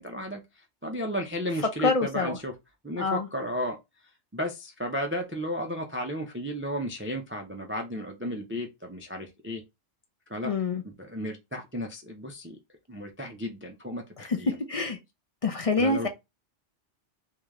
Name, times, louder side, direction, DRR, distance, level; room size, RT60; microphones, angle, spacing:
voice 1, 0.0-2.5 2.8-3.8 4.3-9.6 10.3-10.5 10.8-12.6 12.9-14.6 15.8-16.1, equal, 20° right, 0.3 m, -33 dB
voice 2, 1.8-2.4 3.0-3.3 10.4-10.8 14.3-15.0 15.4-16.1, left 3 dB, 50° left, 0.4 m, -26 dB
3.3 x 2.8 x 3.5 m
omnidirectional pair, 1.2 m